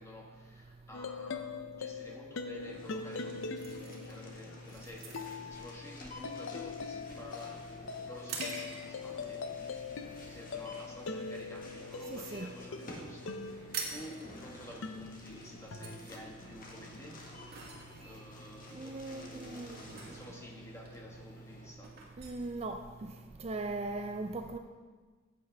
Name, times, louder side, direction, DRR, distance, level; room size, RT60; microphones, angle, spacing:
voice 1, 0.0-7.6 8.0-17.2 17.6-22.0 23.1-23.3, left 1 dB, 15° left, -1 dB, 1.6 m, -51 dB
sound 1, 0.9-14.3 14.8-16.0, left 4 dB, 85° left, 0.6 m, -42 dB
sound 2, 2.6-21.7, left 1 dB, 45° left, 1.6 m, -49 dB
sound 3, 3.6-9.2 9.7-9.9 10.4-10.8 11.1-12.3 12.5-12.6 12.8-13.0 13.3-23.3, right 4 dB, 55° right, 1.9 m, -46 dB
voice 2, 12.1-12.5 18.7-19.8 22.2-22.8 23.4-24.6, right 2 dB, 35° right, 6 dB, 0.4 m, -38 dB
14.5 x 8.7 x 3.4 m, 1.4 s
head